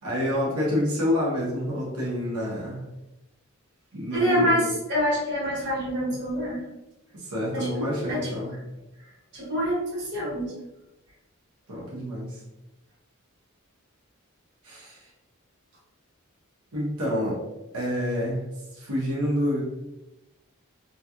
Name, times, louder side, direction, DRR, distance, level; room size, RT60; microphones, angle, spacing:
voice 1, 0.0-2.8 3.9-4.7 7.1-8.6 11.7-12.4 14.6-15.0 16.7-17.4 17.7-18.4 18.7-19.6, equal, 90° right, -5 dB, 1.1 m, -28 dB
voice 2, 4.1-6.6 7.5-8.3 9.3-10.5, equal, 50° right, -7 dB, 1.5 m, -26 dB
3.1 x 2.9 x 2.4 m, 0.95 s
head